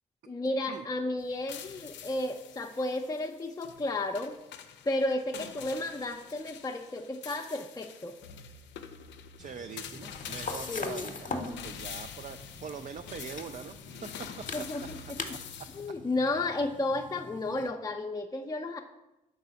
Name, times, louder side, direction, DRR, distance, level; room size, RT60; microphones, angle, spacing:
voice 1, 0.3-4.4 4.8-8.1 10.7-11.1 14.5-15.0 15.7-18.8, left 2 dB, 20° left, 3 dB, 0.5 m, -32 dB
sound 1, 1.2-15.9, left 8 dB, 65° left, 0.5 m, -46 dB
sound 2, 9.4-17.7, left 3 dB, 40° left, 0.9 m, -42 dB
voice 2, 9.4-13.7 14.0-14.3 15.3-15.4, right 6 dB, 40° right, 8 dB, 0.4 m, -43 dB
4.7 x 4.0 x 5.6 m, 0.96 s
hypercardioid pair, 40°, 20 cm